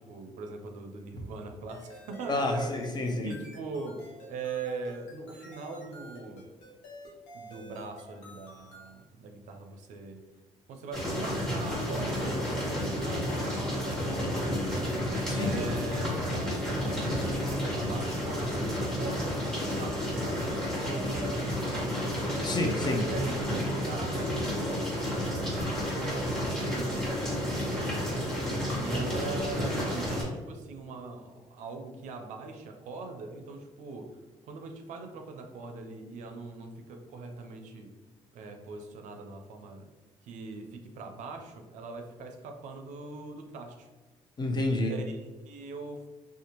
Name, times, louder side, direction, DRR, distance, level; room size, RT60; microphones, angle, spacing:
voice 1, 0.0-2.7 3.2-6.5 7.3-10.2 10.7-14.9 15.3-22.2 23.0-28.2 28.8-37.9 38.3-39.9 40.2-43.9 44.8-46.1, right 3 dB, 75° right, 4 dB, 0.4 m, -41 dB
sound 1, 1.7-8.9, left 1 dB, 90° left, 0.7 m, -50 dB
voice 2, 2.3-3.3 15.3-15.5 22.4-23.1 44.4-44.9, left 2 dB, 35° left, 3 dB, 0.5 m, -29 dB
sound 2, 10.9-30.2, equal, 5° left, 1.2 m, -31 dB
2.5 x 2.3 x 2.8 m, 1.2 s
supercardioid pair, 75°, 13 cm